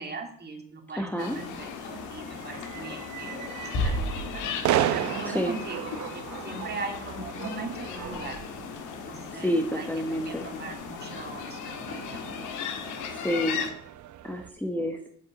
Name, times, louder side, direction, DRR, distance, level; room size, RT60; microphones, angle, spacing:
voice 1, 0.0-4.4 4.9-8.4 9.0-12.1, right 3 dB, 35° right, 2 dB, 2.9 m, -40 dB
voice 2, 1.0-1.4 5.3-5.5 9.4-10.5 13.2-13.6 14.2-15.0, equal, 5° left, 3 dB, 1.3 m, -28 dB
sound 1, 1.2-13.7, left 7 dB, 90° left, 1.5 m, -37 dB
sound 2, 1.3-14.5, right 11 dB, 75° right, 0.8 m, -36 dB
sound 3, 3.7-5.3, equal, 65° left, 4.4 m, -31 dB
7.9 x 7.5 x 7.6 m, 0.63 s
cardioid pair, 90°, 30 cm